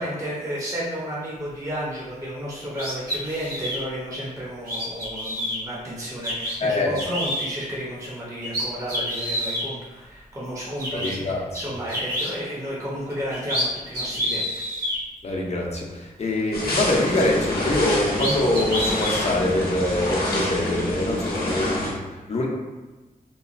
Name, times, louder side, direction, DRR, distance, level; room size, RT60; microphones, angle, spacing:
voice 1, 0.0-14.4, equal, 20° right, -7 dB, 0.7 m, -32 dB
sound 1, 2.7-3.8 4.6-5.6 6.2-6.5 6.9-7.5 8.0-8.1 8.4-9.7 10.5-10.6 10.8-11.2 11.9-12.3 13.1-13.6 13.9-15.0 17.7-17.8 18.2-19.2, equal, 85° right, 1.1 m, -28 dB
voice 2, 6.6-7.0 10.9-11.6 15.2-22.5, left 1 dB, 45° left, -1 dB, 0.6 m, -24 dB
sound 2, 16.5-21.9, left 1 dB, 85° left, 0.7 m, -27 dB
3.0 x 2.2 x 2.5 m, 1.2 s
wide cardioid pair, 75°, 16 cm